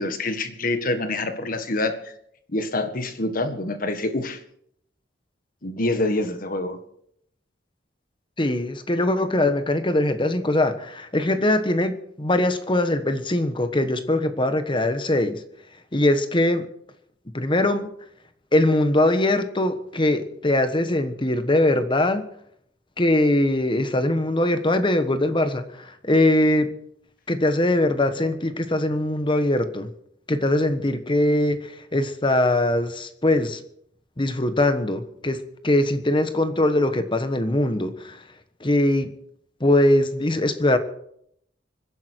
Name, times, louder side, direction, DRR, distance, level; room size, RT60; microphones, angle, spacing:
voice 1, 0.0-2.1 2.5-4.4 5.6-6.8, left 2 dB, 50° left, 8 dB, 1.7 m, -26 dB
voice 2, 8.4-15.4 15.9-16.7 17.3-17.9 18.5-22.2 23.0-26.7 27.3-29.9 30.3-33.6 34.2-38.2 38.6-39.1 39.6-40.8, left 1 dB, 25° left, 10 dB, 1.2 m, -21 dB
25.0 x 11.0 x 4.6 m, 0.70 s
head